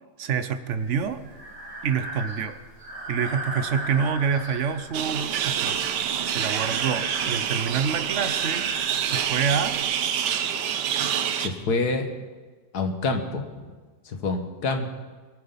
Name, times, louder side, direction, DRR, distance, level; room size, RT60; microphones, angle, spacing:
voice 1, 0.2-1.2 1.8-2.6 3.1-5.8 6.2-8.7 9.0-9.8, right 6 dB, 55° right, 11 dB, 0.9 m, -27 dB
Breathing, 0.8-9.8, right 1 dB, 20° right, 3.6 m, -38 dB
sound 1, 4.9-11.5, right 9 dB, 90° right, 1.4 m, -27 dB
voice 2, 11.3-12.1 12.7-13.8 14.1-14.9, left 3 dB, 65° left, 6 dB, 1.9 m, -27 dB
22.5 x 9.0 x 5.7 m, 1.4 s
omnidirectional pair, 1.8 m